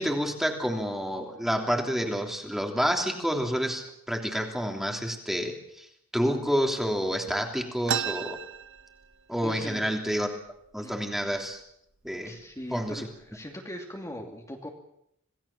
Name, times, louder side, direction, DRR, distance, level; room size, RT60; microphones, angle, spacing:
voice 1, 0.0-5.9 6.1-8.4 9.3-10.3 10.7-11.6 12.0-12.3 12.7-13.1, equal, ahead, 2 dB, 3.2 m, -29 dB
sound 1, 7.9-9.5 9.8-9.9 10.2-10.8 11.4-11.5 12.2-12.4 12.9-13.3, right 8 dB, 60° right, 0.9 m, -33 dB
voice 2, 9.4-9.9 10.8-11.1 12.2-14.7, equal, 15° left, 0 dB, 2.8 m, -40 dB
27.5 x 18.0 x 7.3 m, 0.75 s
head